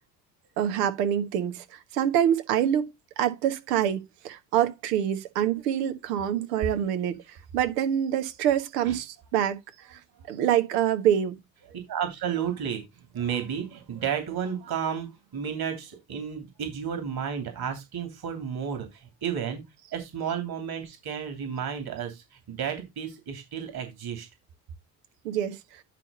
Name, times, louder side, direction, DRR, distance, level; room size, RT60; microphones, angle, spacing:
voice 1, 0.6-9.6 9.9-10.0 10.3-11.4 25.2-25.8, right 10 dB, 65° right, 1.3 m, -26 dB
voice 2, 11.7-19.7 19.9-24.3, right 8 dB, 45° right, 3.1 m, -32 dB
9.8 x 5.1 x 3.9 m
figure-of-eight pair, 50°, 50 cm